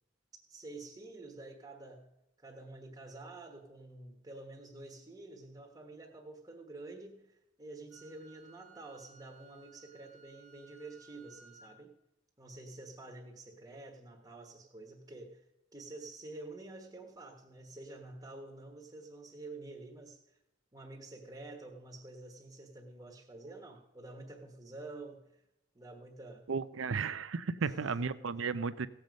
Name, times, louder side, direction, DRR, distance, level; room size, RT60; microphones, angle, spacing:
voice 1, 0.5-2.1 2.4-11.9 12.4-15.4 15.7-20.2 20.7-25.3 25.7-26.5 27.6-28.1, right 2 dB, 20° right, 1 dB, 1.3 m, -49 dB
Wind instrument woodwind instrument, 7.9-11.8, right 5 dB, 70° left, 1.9 m, -60 dB
voice 2, 26.5-28.9, right 5 dB, 75° right, 14 dB, 0.6 m, -34 dB
17.0 x 7.8 x 5.2 m, 0.90 s
head